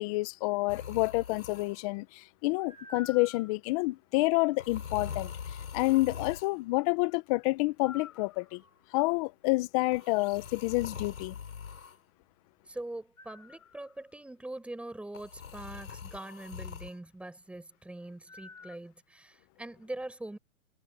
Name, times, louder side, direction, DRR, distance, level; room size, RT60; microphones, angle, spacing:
voice 1, 0.0-5.3 5.7-8.6 8.9-11.3, left 23 dB, 25° left, 1.0 m, -28 dB
sound 1, 0.7-1.9 2.6-3.5 4.6-6.6 7.8-8.8 9.9-12.0 13.2-13.9 15.1-17.0 18.3-18.8, left 7 dB, 80° left, 7.2 m, -43 dB
voice 2, 12.6-20.4, right 1 dB, 5° right, 5.8 m, -43 dB
hypercardioid pair, 150°, 41 cm